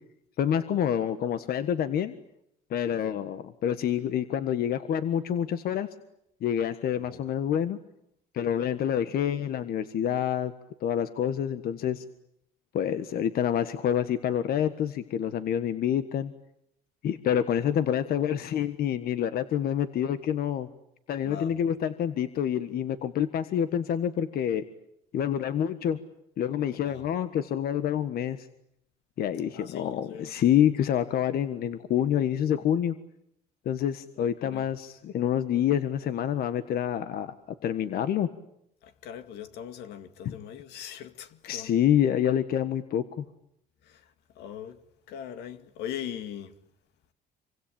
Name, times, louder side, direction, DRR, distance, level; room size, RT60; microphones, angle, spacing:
voice 1, 0.4-2.1 2.7-5.9 6.4-7.8 8.3-10.5 10.8-12.0 12.7-16.3 17.0-20.7 21.1-24.6 25.1-26.0 26.4-28.5 29.2-32.9 33.6-37.3 37.6-38.3 40.2-40.3 41.5-43.2, left 9 dB, 65° left, 1.5 m, -27 dB
voice 2, 2.9-3.2 7.1-7.2 21.2-21.6 26.8-27.1 29.5-30.5 34.2-34.7 38.8-41.8 43.8-44.0 44.4-44.8 45.1-46.5, left 9 dB, 80° left, 2.2 m, -41 dB
26.5 x 25.0 x 8.8 m
cardioid pair, 110°, 17 cm